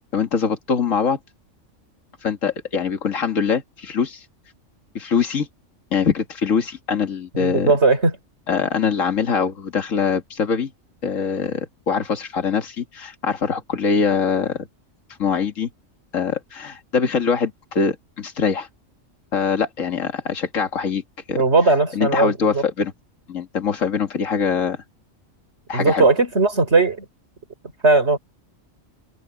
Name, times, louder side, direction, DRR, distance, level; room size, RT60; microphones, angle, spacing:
voice 1, 0.1-1.2 2.2-4.2 4.9-5.5 5.9-7.7 8.5-10.7 11.0-14.7 15.2-15.7 16.1-18.7 19.3-21.0 21.3-21.4 21.9-22.9 23.3-24.8 25.7-26.1, left 6 dB, 75° left, 2.2 m, -23 dB
voice 2, 7.4-8.1 21.3-22.6 25.7-27.0 27.8-28.2, right 3 dB, 55° right, 4.6 m, -18 dB
omnidirectional pair, 1.4 m